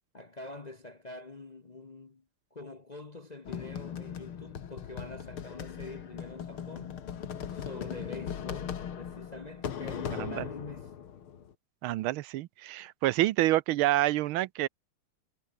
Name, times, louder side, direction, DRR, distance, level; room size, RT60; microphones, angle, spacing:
voice 1, 0.1-2.2 2.5-7.0 7.5-10.9 12.8-12.9, left 2 dB, 40° left, 0.6 m, -45 dB
sound 1, 3.4-11.5, left 8 dB, 75° left, 2.5 m, -39 dB
voice 2, 11.8-14.7, right 15 dB, 75° right, 1.5 m, -28 dB
omnidirectional pair, 2.4 m